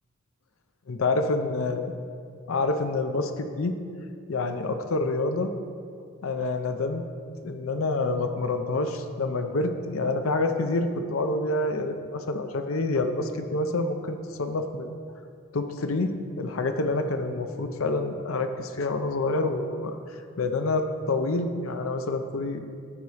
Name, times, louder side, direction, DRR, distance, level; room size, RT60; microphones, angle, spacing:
voice 1, 0.9-1.9 2.5-3.8 4.3-5.5 6.2-7.0 7.4-14.9 15.5-20.0 20.4-22.6, left 2 dB, 80° left, 7 dB, 0.6 m, -27 dB
14.0 x 4.8 x 4.1 m, 2.4 s
head